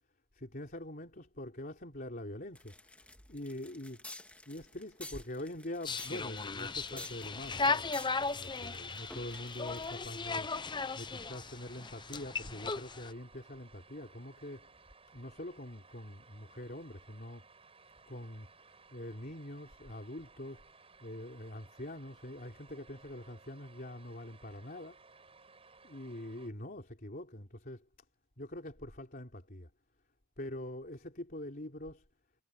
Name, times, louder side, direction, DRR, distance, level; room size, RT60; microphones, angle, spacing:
voice 1, 0.3-4.0 4.5-7.9 8.3-10.7 10.9-14.7 15.1-17.5 18.1-20.6 21.0-25.0 25.8-27.9 28.4-29.7 30.4-32.0, left 1 dB, 45° left, 3.7 m, -44 dB
sound 1, 2.5-10.2, left 2 dB, 5° left, 1.8 m, -50 dB
sound 2, 5.8-13.1, left 4 dB, 20° left, 0.7 m, -36 dB
sound 3, 8.2-26.5, right 4 dB, 30° right, 6.2 m, -60 dB
head